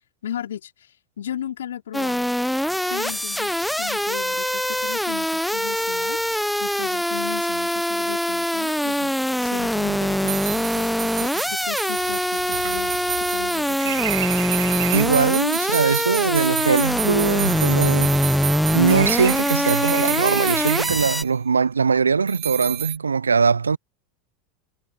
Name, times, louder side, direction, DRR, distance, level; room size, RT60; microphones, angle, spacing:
voice 1, 0.2-2.3 2.9-6.2 6.6-14.1, left 10 dB, 75° left, 3.7 m, -36 dB
sound 1, 1.9-21.2, equal, ahead, 1.1 m, -23 dB
sound 2, 10.2-21.3 22.3-23.0, right 15 dB, 45° right, 7.2 m, -31 dB
sound 3, 11.5-11.6 12.0-15.3 16.1-18.5 18.9-21.2, right 14 dB, 70° right, 5.6 m, -33 dB
voice 2, 14.9-18.2 18.7-23.8, right 5 dB, 85° right, 0.7 m, -21 dB
figure-of-eight pair, 85°, 0 cm